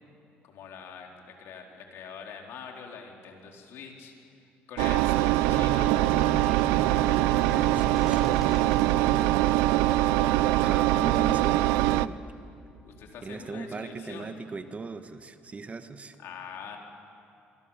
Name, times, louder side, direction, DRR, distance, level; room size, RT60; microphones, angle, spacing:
voice 1, 0.4-4.1 4.7-6.7 9.8-11.0 12.8-14.3 16.2-16.8, left 6 dB, 70° left, 1 dB, 4.1 m, -44 dB
Engine, 4.8-12.1, right 16 dB, 90° right, 0.5 m, -23 dB
sound 1, 5.1-10.0, right 1 dB, 5° right, 4.4 m, -40 dB
voice 2, 7.4-9.4 10.6-12.2 13.2-16.1, right 4 dB, 30° right, 9 dB, 1.6 m, -38 dB
27.0 x 24.0 x 7.4 m, 2.6 s
supercardioid pair, 75°, 4 cm